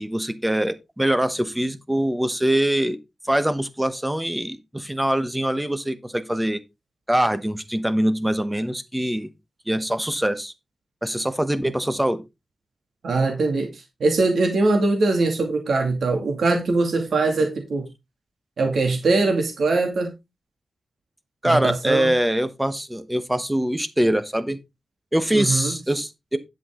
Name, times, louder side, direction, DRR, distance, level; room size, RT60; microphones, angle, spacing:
voice 1, 0.0-3.0 3.3-6.6 7.1-9.3 9.7-10.5 11.0-12.2 21.4-24.6 25.1-26.4, right 1 dB, 5° right, 1.0 m, -23 dB
voice 2, 13.0-17.9 18.6-20.1 21.4-22.1 25.3-25.7, right 3 dB, 65° right, 2.2 m, -22 dB
11.0 x 6.1 x 3.7 m
wide cardioid pair, 160°, 0 cm